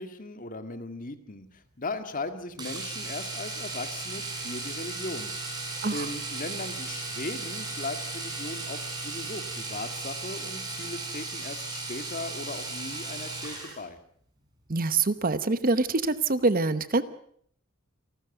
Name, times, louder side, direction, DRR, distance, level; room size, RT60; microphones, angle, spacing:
voice 1, 0.0-5.5 5.9-14.0, left 2 dB, 40° left, 9 dB, 2.0 m, -38 dB
Domestic sounds home sounds, 2.6-13.8 16.0-16.1 16.4-16.5, right 3 dB, 20° right, 5.4 m, -36 dB
voice 2, 14.7-17.0, right 3 dB, 45° right, 14 dB, 1.0 m, -25 dB
28.5 x 13.0 x 8.0 m, 0.62 s
head